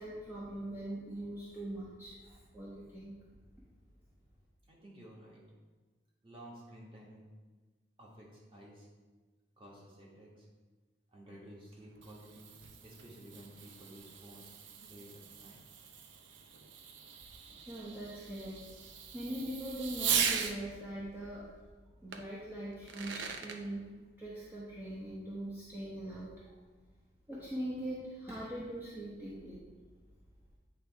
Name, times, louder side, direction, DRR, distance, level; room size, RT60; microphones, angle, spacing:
voice 1, 0.0-3.2 17.4-18.6 19.1-21.5 22.0-23.8 24.2-26.6 27.3-29.6, right 1 dB, 10° right, -8 dB, 0.8 m, -42 dB
voice 2, 4.6-5.4 6.2-7.2 8.0-8.9 9.6-10.5 11.1-12.5 12.8-14.6 14.9-15.6, equal, 30° right, -4 dB, 1.5 m, -53 dB
Fireworks, 11.7-20.6 22.1-22.2 22.7-23.6, right 7 dB, 80° right, 0.6 m, -39 dB
8.7 x 3.3 x 4.6 m, 1.3 s
head